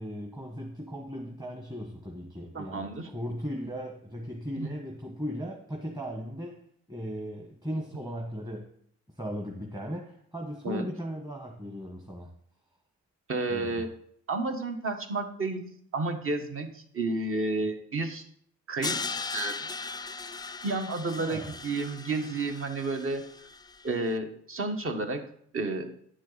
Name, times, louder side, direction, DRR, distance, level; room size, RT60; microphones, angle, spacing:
voice 1, 0.0-6.6 6.9-8.7 9.2-12.3 13.5-13.8 21.2-21.5, equal, 15° right, 0 dB, 1.3 m, -37 dB
voice 2, 2.5-3.1 4.6-4.7 10.6-10.9 13.3-13.9 14.3-15.7 15.9-18.2 18.7-19.6 20.6-23.2 23.8-25.2 25.5-25.9, right 3 dB, 45° right, 6 dB, 1.4 m, -31 dB
Crash cymbal, 18.8-23.9, left 4 dB, 15° left, 0.4 m, -38 dB
9.7 x 6.4 x 4.0 m, 0.65 s
cardioid pair, 90°, 30 cm